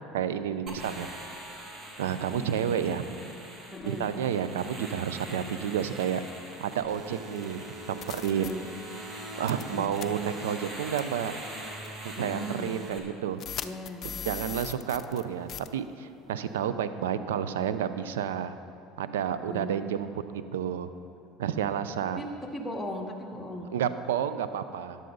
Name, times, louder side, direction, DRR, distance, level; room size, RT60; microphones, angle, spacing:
voice 1, 0.1-1.1 2.0-3.0 3.9-6.2 6.6-8.5 9.4-11.3 12.0-13.4 14.3-18.6 19.0-20.1 20.3-20.9 21.4-22.3 23.7-25.0, right 9 dB, 85° right, 11 dB, 0.5 m, -30 dB
sound 1, 0.7-13.0, right 1 dB, 40° right, 2.4 m, -42 dB
voice 2, 2.1-3.0 3.7-4.1 8.3-8.7 9.6-10.0 12.2-12.7 13.6-14.4 19.5-20.1 22.1-23.7, equal, 5° left, -1 dB, 2.1 m, -38 dB
sound 2, 7.4-7.5 8.0-8.5 9.5-9.7 10.0-10.1 11.0-11.1 11.8-11.9 13.4-15.2 15.5-15.7, left 8 dB, 45° left, 0.5 m, -38 dB
13.5 x 10.5 x 4.0 m, 2.7 s
hypercardioid pair, 80°, 0 cm